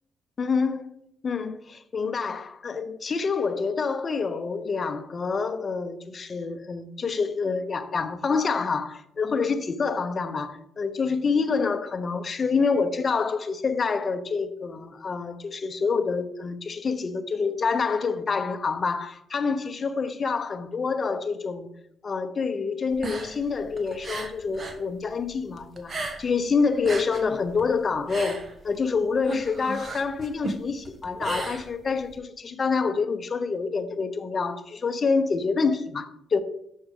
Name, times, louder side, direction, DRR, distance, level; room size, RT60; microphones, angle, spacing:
voice 1, 0.4-0.9 1.2-21.7 22.0-36.4, left 5 dB, 40° left, 0.7 m, -27 dB
sound 1, 22.9-24.8 25.1-26.4 26.7-32.2, right 2 dB, 40° right, 1.3 m, -35 dB
6.4 x 6.1 x 4.8 m
cardioid pair, 90°, 0 cm